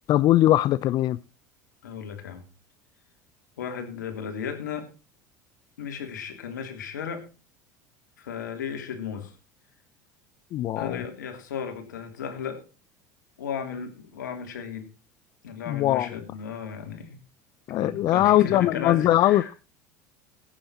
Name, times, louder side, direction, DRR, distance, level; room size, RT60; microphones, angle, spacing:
voice 1, 0.1-1.2 10.5-11.0 15.7-16.1 17.7-19.4, left 14 dB, 50° left, 0.5 m, -21 dB
voice 2, 1.8-2.4 3.6-4.9 5.8-7.3 8.2-9.3 10.8-12.6 13.4-14.9 15.4-17.2 17.7-19.6, left 7 dB, 85° left, 3.1 m, -35 dB
17.5 x 9.0 x 4.3 m
hypercardioid pair, 80°, 10 cm